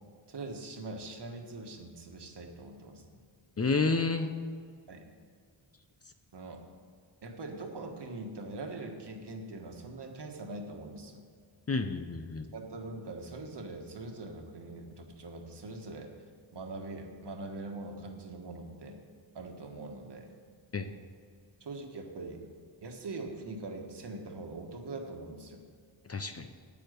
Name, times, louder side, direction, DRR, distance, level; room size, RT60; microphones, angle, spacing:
voice 1, 0.3-3.2 4.9-5.0 6.3-6.6 7.2-11.2 12.5-16.1 16.5-19.0 19.3-20.3 21.6-22.4 22.8-25.6, right 2 dB, 60° right, 3 dB, 1.6 m, -42 dB
voice 2, 3.6-4.3 11.7-12.5 20.7-20.9 26.1-26.5, left 4 dB, 30° left, 7 dB, 0.6 m, -30 dB
9.2 x 9.0 x 6.7 m, 2.1 s
wide cardioid pair, 115°, 47 cm